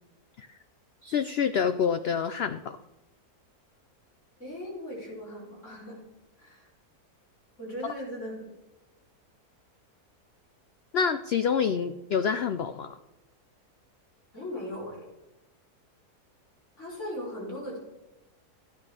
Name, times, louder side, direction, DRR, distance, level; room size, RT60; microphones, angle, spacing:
voice 1, 1.0-2.8 10.9-13.0, left 7 dB, 90° left, 10 dB, 0.5 m, -27 dB
voice 2, 4.4-6.0 6.4-6.7 7.6-8.5 14.3-15.1 16.8-17.8, equal, 50° left, -5 dB, 4.5 m, -38 dB
14.0 x 9.2 x 4.9 m, 1.0 s
omnidirectional pair, 1.6 m